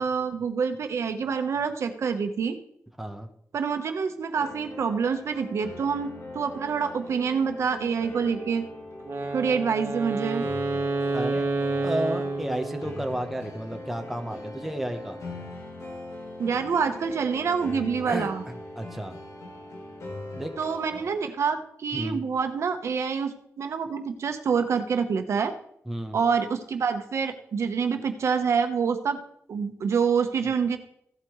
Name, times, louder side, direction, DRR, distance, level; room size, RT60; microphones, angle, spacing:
voice 1, 0.0-2.6 3.5-8.7 9.3-10.4 16.4-18.4 20.6-25.5 26.1-29.2 29.5-30.8, right 6 dB, 65° right, 7 dB, 1.1 m, -27 dB
voice 2, 3.0-3.3 11.1-11.5 11.8-15.2 18.0-19.2 20.3-20.5 21.9-22.2 25.9-26.2, right 1 dB, 5° right, 4 dB, 1.0 m, -32 dB
sound 1, 4.3-21.1, left 2 dB, 75° left, 2.9 m, -41 dB
Wind instrument woodwind instrument, 9.0-13.2, right 3 dB, 50° right, 1.5 m, -29 dB
16.0 x 8.3 x 3.2 m, 0.70 s
wide cardioid pair, 160°, 5 cm